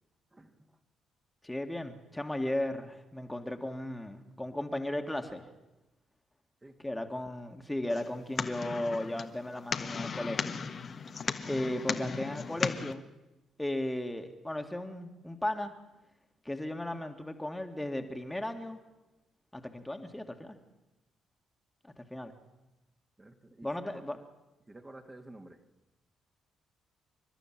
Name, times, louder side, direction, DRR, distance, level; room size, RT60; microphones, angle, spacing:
voice 1, 0.3-0.8 6.6-6.8 23.2-24.0 24.7-25.6, right 1 dB, 20° right, 3 dB, 2.2 m, -51 dB
voice 2, 1.4-5.5 6.8-10.6 11.5-13.0 13.6-15.7 16.5-18.8 19.5-20.6 21.8-22.3 23.6-24.2, left 1 dB, 10° left, 5 dB, 2.1 m, -35 dB
sound 1, 7.9-12.9, left 5 dB, 50° left, 1.4 m, -36 dB
29.5 x 12.0 x 7.6 m, 1.0 s
hypercardioid pair, 50°, 0 cm